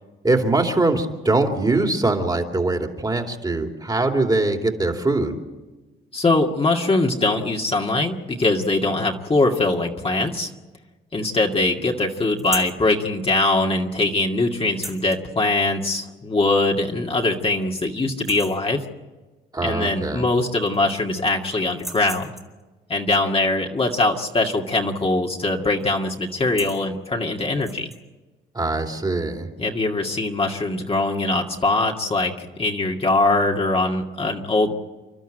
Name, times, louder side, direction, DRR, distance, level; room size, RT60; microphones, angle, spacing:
voice 1, 0.2-5.4 19.5-20.2 28.5-29.5, right 2 dB, 20° right, 3 dB, 2.7 m, -22 dB
voice 2, 6.1-10.5 11.1-18.8 19.6-22.3 22.9-27.9 29.6-34.7, left 2 dB, 30° left, 1 dB, 2.1 m, -22 dB
sound 1, 12.4-12.8 14.7-15.2 16.6-16.7 17.1-17.2 17.6-17.9 18.1-18.7 20.0-20.1 20.4-21.1 21.7-22.6 25.0-25.3 25.6-25.8 26.3-26.9 27.5-28.0, equal, ahead, 2.4 m, -36 dB
29.5 x 12.0 x 9.1 m, 1.2 s
cardioid pair, 90°, 20 cm